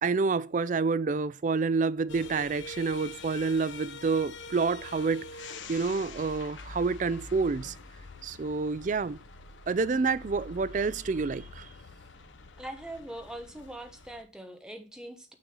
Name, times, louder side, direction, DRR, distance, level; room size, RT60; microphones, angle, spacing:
voice 1, 0.0-5.3 5.7-7.8 8.2-9.2 9.7-11.7, right 4 dB, 40° right, 0.3 m, -28 dB
sound 1, 2.1-14.2, left 3 dB, 75° left, 0.9 m, -45 dB
voice 2, 12.6-15.3, right 1 dB, 5° right, 1.0 m, -42 dB
6.4 x 6.2 x 3.7 m
head